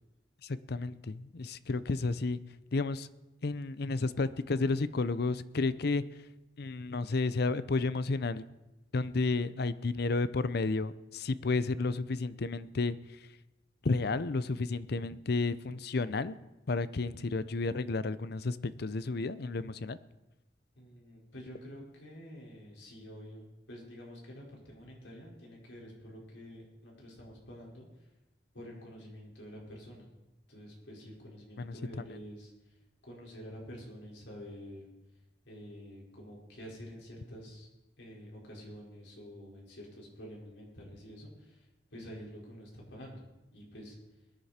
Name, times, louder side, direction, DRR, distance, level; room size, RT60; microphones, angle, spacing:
voice 1, 0.7-2.4 2.7-3.1 3.4-6.0 6.6-8.4 8.9-13.0 13.8-16.4 16.7-20.0 31.6-32.0, left 3 dB, 60° left, 15 dB, 0.6 m, -32 dB
voice 2, 20.8-27.9 28.5-30.1 30.5-32.5 33.0-34.8 35.5-37.7 38.0-41.6 41.9-43.2 43.5-44.0, equal, 75° left, -2 dB, 4.9 m, -48 dB
22.5 x 10.0 x 4.3 m, 1.0 s
head